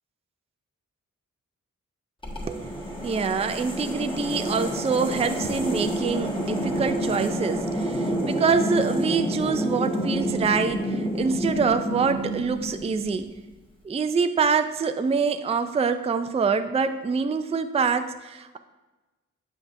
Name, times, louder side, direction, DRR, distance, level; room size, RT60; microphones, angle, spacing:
sound 1, 2.2-13.3, equal, 15° left, 1.5 m, -29 dB
voice 1, 2.5-13.3 13.8-18.6, right 5 dB, 20° right, 9 dB, 0.4 m, -25 dB
7.6 x 6.1 x 2.6 m, 1.2 s
cardioid pair, 50°, 31 cm